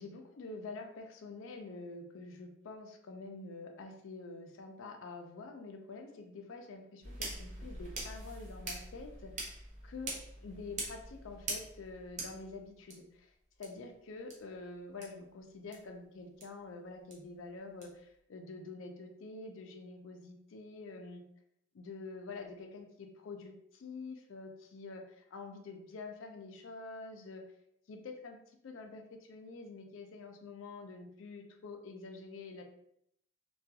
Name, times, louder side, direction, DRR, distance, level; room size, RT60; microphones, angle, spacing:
voice 1, 0.0-10.2 10.4-13.3 13.6-21.2 21.7-27.4 27.9-28.4 28.6-32.6, left 3 dB, 90° left, 4 dB, 0.4 m, -47 dB
sound 1, 7.0-12.9 13.6-13.7 14.3-14.4 15.0-15.1 15.7-15.8 16.4-16.5 17.1-17.2 17.8-17.9, right 2 dB, 40° right, 0.6 m, -43 dB
2.3 x 2.3 x 2.7 m, 0.74 s
head